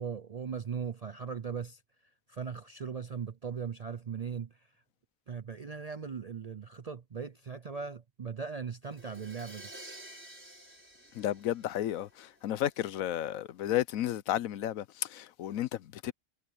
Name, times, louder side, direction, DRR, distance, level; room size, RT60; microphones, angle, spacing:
voice 1, 0.0-1.8 2.3-4.6 5.3-9.7, right 6 dB, 50° right, 0.4 m, -39 dB
Crash cymbal, 8.8-12.6, right 1 dB, 10° right, 4.6 m, -51 dB
voice 2, 11.1-16.1, left 12 dB, 85° left, 1.1 m, -33 dB
omnidirectional pair, 1.4 m